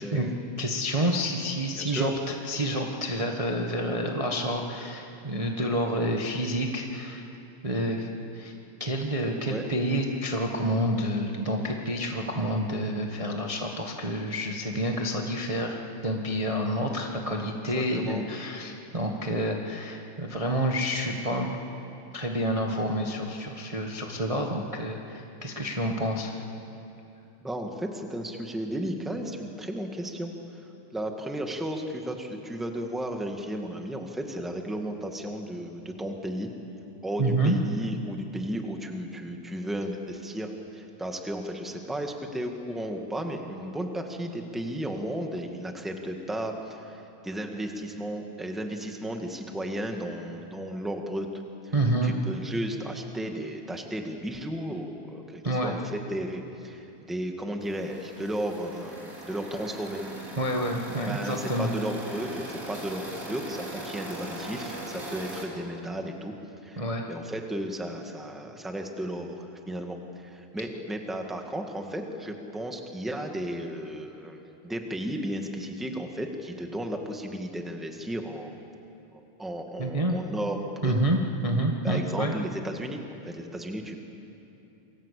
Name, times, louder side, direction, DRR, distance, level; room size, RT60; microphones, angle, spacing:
voice 1, 0.0-0.3 1.7-2.1 9.4-9.6 17.4-17.5 17.7-18.2 27.4-30.6 30.9-36.5 37.0-51.3 51.6-51.7 52.0-60.1 61.1-66.3 66.6-66.8 67.1-78.6 79.1-80.6 80.8-80.9 81.8-84.0, right 1 dB, ahead, 3 dB, 1.0 m, -34 dB
voice 2, 0.6-7.2 7.6-8.5 8.8-21.6 22.1-26.3 37.2-37.6 51.7-52.1 55.4-55.7 60.4-61.7 66.8-67.1 79.8-80.2 80.8-82.3, right 1 dB, 50° right, 1 dB, 0.4 m, -28 dB
sound 1, 57.6-65.5, right 1 dB, 25° right, 4.2 m, -40 dB
29.0 x 22.0 x 8.5 m, 2.9 s
omnidirectional pair, 3.6 m